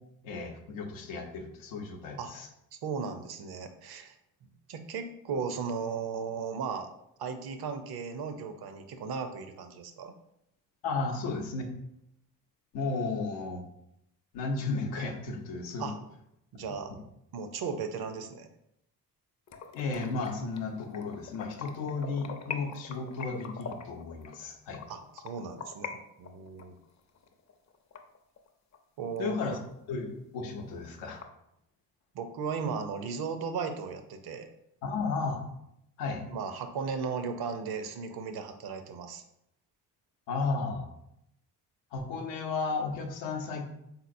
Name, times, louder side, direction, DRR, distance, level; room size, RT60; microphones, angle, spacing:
voice 1, 0.2-2.5 10.8-11.7 12.7-13.6 14.3-15.9 16.5-17.0 19.7-24.8 29.2-29.6 29.9-31.2 34.8-35.4 36.0-36.2 40.3-40.9 41.9-43.6, left 4 dB, 85° left, 3 dB, 0.6 m, -34 dB
voice 2, 2.8-4.2 4.4-6.9 7.2-10.1 15.8-15.9 16.5-16.9 17.3-18.5 24.9-26.7 29.0-29.6 32.1-34.5 36.3-39.2, right 5 dB, 60° right, 7 dB, 0.6 m, -36 dB
sound 1, 19.5-25.9 26.2-28.8 29.2-29.3 29.7-29.8 30.1-30.2 30.5-31.2, left 6 dB, 40° left, 0.5 m, -43 dB
3.8 x 2.8 x 2.6 m, 0.80 s
supercardioid pair, 50°, 43 cm